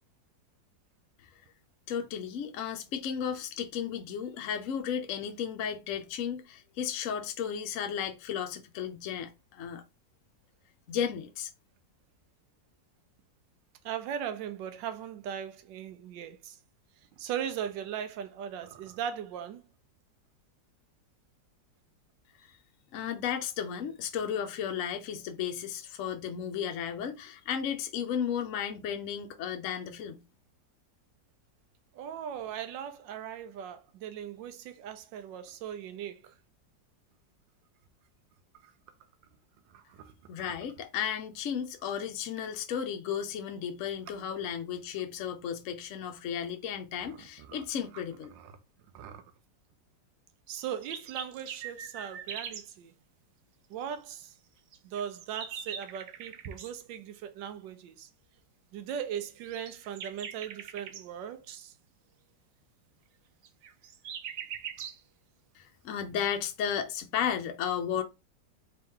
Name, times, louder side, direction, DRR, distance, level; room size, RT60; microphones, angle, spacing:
voice 1, 1.9-9.8 10.9-11.5 22.4-22.5 22.9-30.2 40.3-48.3 65.5-68.0, left 8 dB, 60° left, 0.8 m, -34 dB
voice 2, 13.8-16.6 17.2-19.6 31.9-36.3 38.6-38.7 39.7-40.1 47.4-47.6 47.9-48.0 48.3-48.5 48.9-49.2 50.5-52.9 53.7-54.3 54.8-58.1 58.7-61.7, right 9 dB, 85° right, 1.4 m, -39 dB
sound 1, 50.6-52.7 54.7-56.7 59.4-61.1 63.4-65.0, right 8 dB, 70° right, 0.8 m, -41 dB
3.6 x 2.9 x 3.6 m
omnidirectional pair, 1.9 m